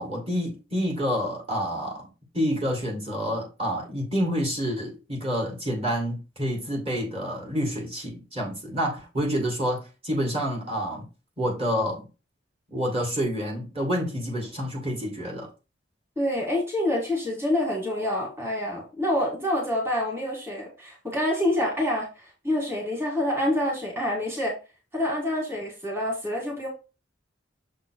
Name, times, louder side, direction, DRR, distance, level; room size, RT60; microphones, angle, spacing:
voice 1, 0.0-2.1 2.3-11.1 11.4-12.1 12.7-15.5, equal, 30° right, 2.1 m, -28 dB
voice 2, 16.2-24.5 24.9-26.7, left 1 dB, 15° right, 2.1 m, -27 dB
6.7 x 3.7 x 4.6 m
head